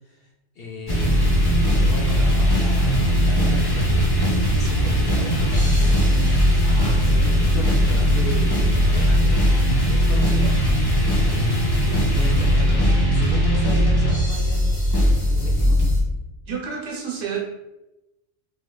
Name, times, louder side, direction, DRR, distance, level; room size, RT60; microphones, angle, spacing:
voice 1, 0.6-1.5 1.7-6.0 7.1-10.6 11.3-15.0 15.3-15.8, equal, 60° left, -2 dB, 0.7 m, -35 dB
sound 1, 0.9-16.0, equal, 40° left, 0.3 m, -19 dB
voice 2, 6.6-7.0 16.4-17.4, right 4 dB, 65° right, -2 dB, 1.1 m, -30 dB
3.0 x 2.9 x 2.2 m, 0.95 s
omnidirectional pair, 1.3 m